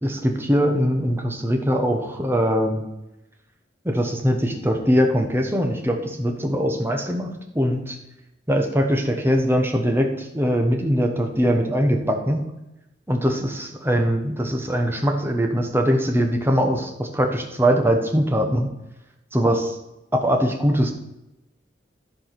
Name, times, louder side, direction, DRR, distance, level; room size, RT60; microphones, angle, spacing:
voice 1, 0.0-2.8 3.8-8.0 8.5-12.4 13.1-18.7 19.3-19.8 20.1-20.9, equal, 10° right, 3 dB, 1.0 m, -22 dB
11.0 x 4.9 x 5.9 m, 0.94 s
head